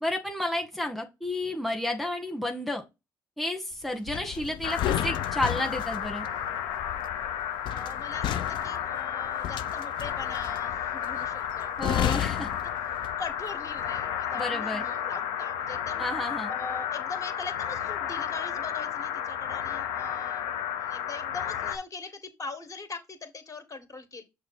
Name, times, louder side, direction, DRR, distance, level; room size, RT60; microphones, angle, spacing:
voice 1, 0.0-2.8 3.4-6.3 11.8-12.5 14.3-14.8 16.0-16.5, left 1 dB, ahead, 1.4 m, -31 dB
sound 1, 4.1-13.4 13.7-14.0, left 12 dB, 70° left, 0.5 m, -33 dB
sound 2, 4.6-21.8, left 9 dB, 85° left, 1.1 m, -32 dB
voice 2, 7.7-12.2 12.9-16.1 16.5-20.4 20.7-24.2, left 4 dB, 40° left, 2.2 m, -41 dB
6.3 x 3.2 x 5.5 m
supercardioid pair, 60°, 9 cm